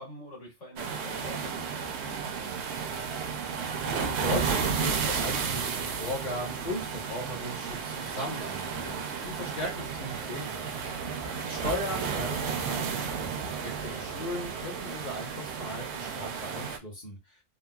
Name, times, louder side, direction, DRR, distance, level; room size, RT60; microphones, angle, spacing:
voice 1, 0.0-2.7 11.0-11.6, left 1 dB, 90° left, 2.1 m, -46 dB
sound 1, 0.8-16.8, right 6 dB, 70° right, 0.8 m, -33 dB
voice 2, 3.7-11.2 11.4-17.2, left 1 dB, 40° left, 1.1 m, -37 dB
3.9 x 2.1 x 2.2 m
omnidirectional pair, 1.2 m